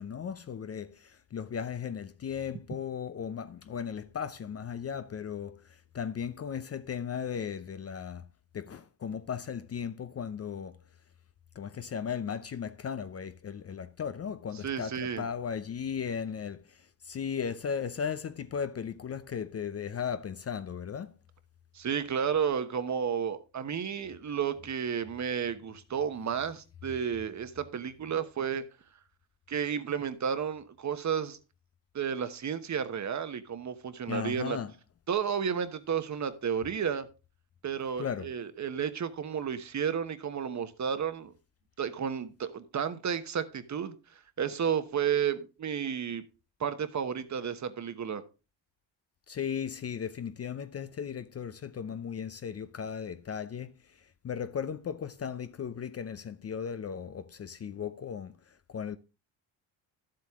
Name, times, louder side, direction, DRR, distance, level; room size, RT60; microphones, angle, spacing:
voice 1, 0.0-8.3 8.5-10.8 11.5-21.1 34.1-34.7 38.0-38.3 49.3-59.0, left 7 dB, 35° left, 0.6 m, -36 dB
voice 2, 14.6-15.2 21.7-28.6 29.5-31.4 31.9-34.6 35.1-37.1 37.6-41.3 41.8-43.9 44.4-46.2 46.6-48.2, right 7 dB, 40° right, 1.1 m, -32 dB
11.5 x 7.7 x 3.6 m
cardioid pair, 100°, 45 cm